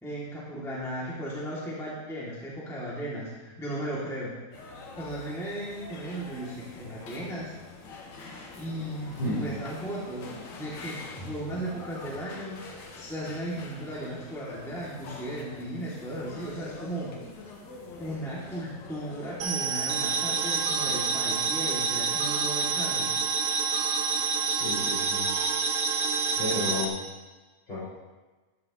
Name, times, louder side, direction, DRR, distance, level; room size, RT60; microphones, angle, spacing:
voice 1, 0.0-4.4 5.0-7.5 8.6-12.6 12.9-17.2 18.0-23.2, right 1 dB, ahead, -7 dB, 1.7 m, -36 dB
sound 1, 4.5-21.0, left 3 dB, 55° left, 2.4 m, -45 dB
sound 2, 19.4-26.9, right 5 dB, 80° right, 1.7 m, -27 dB
voice 2, 24.4-25.3 26.4-26.9 27.7-27.8, left 2 dB, 30° left, -11 dB, 5.5 m, -32 dB
13.5 x 12.5 x 3.2 m, 1.3 s
omnidirectional pair, 4.5 m